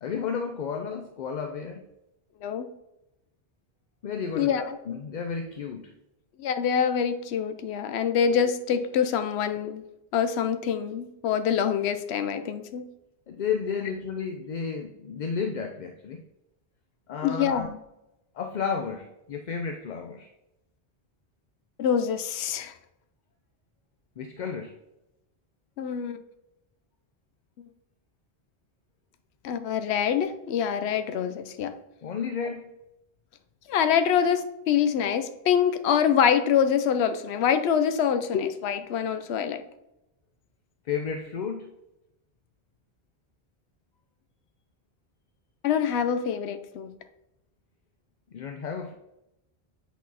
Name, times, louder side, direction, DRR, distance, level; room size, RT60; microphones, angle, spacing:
voice 1, 0.0-1.8 4.0-5.9 13.3-16.2 17.1-17.7 18.3-20.3 24.2-24.7 32.0-32.7 40.8-41.7 48.3-48.9, left 6 dB, 55° left, 5 dB, 0.6 m, -32 dB
voice 2, 4.3-4.8 6.4-9.8 10.1-12.9 17.2-17.8 21.8-22.7 25.8-26.2 29.4-31.7 33.7-39.6 45.6-46.9, left 8 dB, 85° left, 9 dB, 0.8 m, -25 dB
8.4 x 4.1 x 4.0 m, 0.90 s
omnidirectional pair, 1.1 m